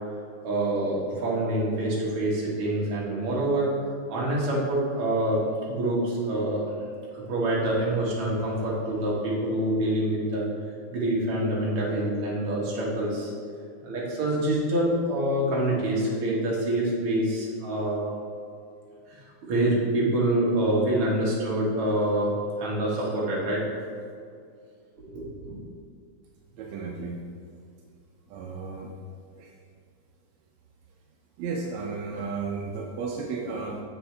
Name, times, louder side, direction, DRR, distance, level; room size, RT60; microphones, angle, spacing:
voice 1, 0.4-3.7 4.1-5.4 5.7-6.7 7.1-10.4 10.9-13.3 13.8-18.1 19.5-22.3 22.6-23.6 25.1-25.6, right 1 dB, 50° right, -5 dB, 2.0 m, -26 dB
voice 2, 26.5-27.2 28.3-28.9 29.4-29.5 31.4-33.8, right 4 dB, 85° right, 0 dB, 1.5 m, -33 dB
7.1 x 7.0 x 3.3 m, 2.3 s
omnidirectional pair, 3.9 m